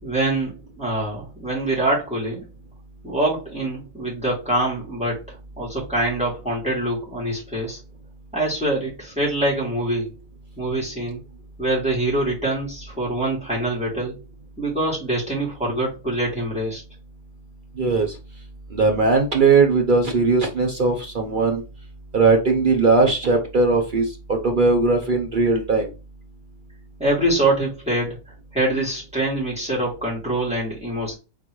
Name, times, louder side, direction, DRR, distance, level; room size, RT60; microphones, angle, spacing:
voice 1, 0.0-2.5 3.0-7.8 8.3-10.1 10.6-11.2 11.6-14.2 14.6-16.8 27.0-28.2 28.5-31.1, right 1 dB, 5° right, -5 dB, 2.3 m, -24 dB
voice 2, 17.8-18.2 18.7-21.6 22.1-25.9, right 3 dB, 75° right, 2 dB, 0.4 m, -19 dB
3.8 x 3.7 x 3.0 m, 0.30 s
omnidirectional pair, 1.8 m